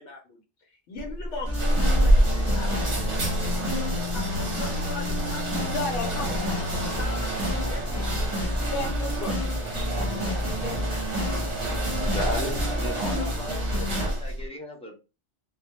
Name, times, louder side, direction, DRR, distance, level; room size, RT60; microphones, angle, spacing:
voice 1, 0.0-6.6 6.9-8.7 9.0-9.2 9.4-10.0, left 3 dB, 90° left, 1 dB, 1.0 m, -42 dB
sound 1, 1.0-14.5, right 1 dB, 45° right, 0.7 m, -28 dB
sound 2, 1.5-14.0, left 1 dB, 15° right, 0.7 m, -30 dB
voice 2, 5.6-7.0 8.6-9.7 10.2-11.0, left 2 dB, 60° left, 0 dB, 0.8 m, -35 dB
voice 3, 12.0-15.0, equal, 10° left, -2 dB, 0.3 m, -35 dB
2.2 x 2.1 x 2.8 m, 0.30 s
omnidirectional pair, 1.2 m